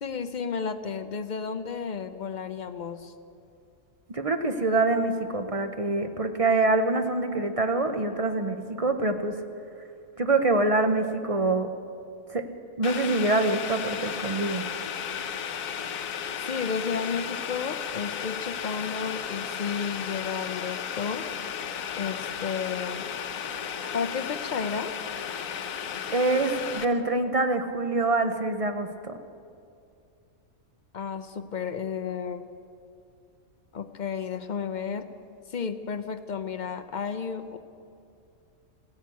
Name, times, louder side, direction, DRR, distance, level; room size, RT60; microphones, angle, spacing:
voice 1, 0.0-3.1 16.5-21.2 22.0-23.0 23.9-24.9 30.9-32.5 33.7-35.1 35.5-37.6, left 6 dB, 55° left, 9 dB, 0.5 m, -32 dB
voice 2, 4.1-9.4 10.2-11.7 12.3-12.5 12.8-14.6 26.1-29.1, right 2 dB, 35° right, 7 dB, 0.5 m, -25 dB
Boiling, 12.8-26.8, left 8 dB, 80° left, 1.2 m, -34 dB
15.5 x 10.5 x 8.3 m, 2.5 s
omnidirectional pair, 1.4 m